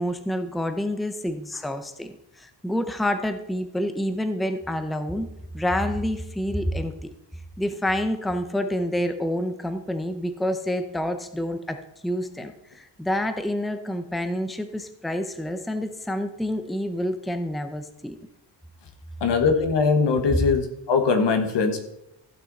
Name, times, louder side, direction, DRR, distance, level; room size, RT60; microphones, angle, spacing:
voice 1, 0.0-5.3 5.5-7.1 7.6-18.2 20.3-20.4, left 1 dB, ahead, 8 dB, 0.7 m, -28 dB
voice 2, 19.2-21.9, left 5 dB, 75° left, 5 dB, 1.6 m, -21 dB
15.0 x 6.1 x 4.1 m, 0.84 s
cardioid pair, 115°, 43 cm